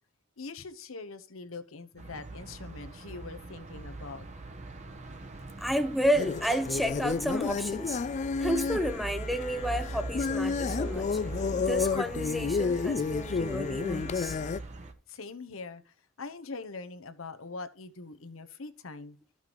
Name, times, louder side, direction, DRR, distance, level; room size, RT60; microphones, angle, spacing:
voice 1, 0.4-4.2 15.1-15.8 16.2-19.2, left 3 dB, 75° left, 0.9 m, -42 dB
sound 1, 2.0-14.9, right 2 dB, 35° right, 1.0 m, -41 dB
voice 2, 5.6-8.0 8.4-11.1 11.5-14.4, equal, ahead, 0.7 m, -31 dB
sound 2, 6.1-14.6, left 5 dB, 35° left, 0.3 m, -31 dB
14.0 x 5.8 x 3.0 m
head